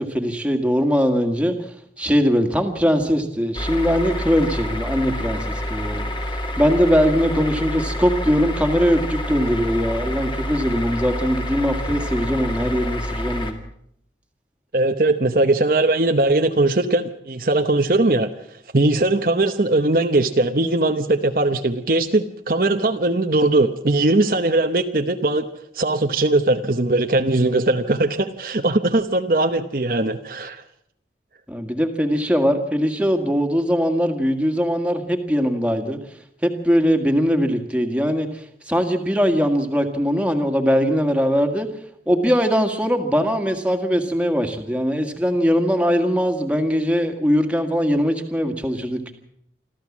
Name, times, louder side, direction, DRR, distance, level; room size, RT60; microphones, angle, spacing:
voice 1, 0.0-1.6 2.0-6.0 6.6-13.6 31.5-36.0 36.4-38.3 38.7-41.7 42.1-49.2, equal, 5° right, 5 dB, 1.9 m, -21 dB
sound 1, 3.6-13.5, left 1 dB, 25° left, 2.2 m, -28 dB
voice 2, 14.7-18.3 18.7-25.4 25.7-30.6, right 2 dB, 50° right, 6 dB, 0.9 m, -20 dB
26.0 x 14.0 x 7.3 m, 0.74 s
head